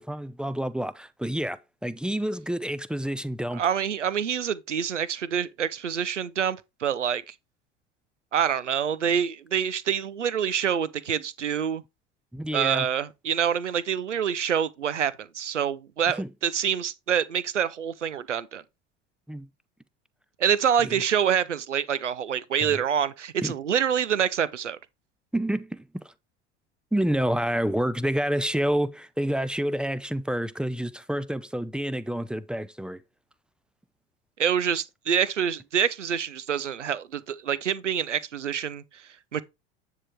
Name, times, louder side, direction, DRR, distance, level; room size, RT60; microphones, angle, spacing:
voice 1, 0.0-3.6 12.3-12.9 16.2-16.3 19.3-19.5 20.8-21.0 22.6-22.8 23.4-23.5 25.3-26.1 26.9-33.0, right 1 dB, 5° right, 0.5 m, -28 dB
voice 2, 3.5-7.3 8.3-11.8 12.5-18.6 20.4-24.8 34.4-39.4, right 8 dB, 85° right, 0.7 m, -26 dB
9.9 x 3.8 x 4.5 m
figure-of-eight pair, 70°, 35 cm